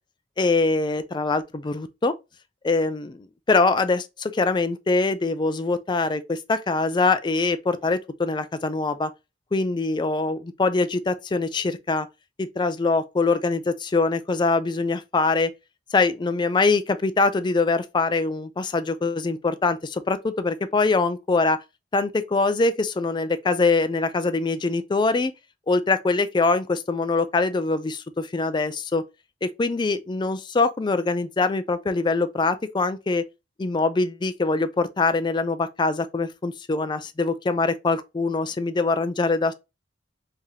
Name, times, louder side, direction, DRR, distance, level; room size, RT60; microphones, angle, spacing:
voice 1, 0.4-2.1 2.6-3.2 3.5-9.1 9.5-12.1 12.4-15.5 15.9-21.6 21.9-25.3 25.7-29.0 29.4-33.2 33.6-39.5, left 3 dB, 25° left, 0.4 m, -23 dB
3.3 x 2.7 x 3.6 m
head